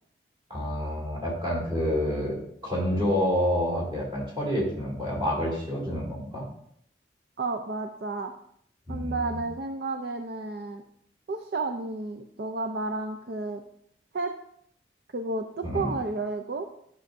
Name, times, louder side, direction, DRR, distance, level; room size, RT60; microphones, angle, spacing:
voice 1, 0.5-2.4 2.6-6.4 8.9-9.4 15.6-15.9, equal, 30° right, -4 dB, 2.7 m, -28 dB
voice 2, 7.4-8.3 8.9-10.8 11.3-13.6 14.1-14.3 15.1-16.7, right 3 dB, 55° right, 5 dB, 0.5 m, -31 dB
11.5 x 5.6 x 2.6 m, 0.70 s
head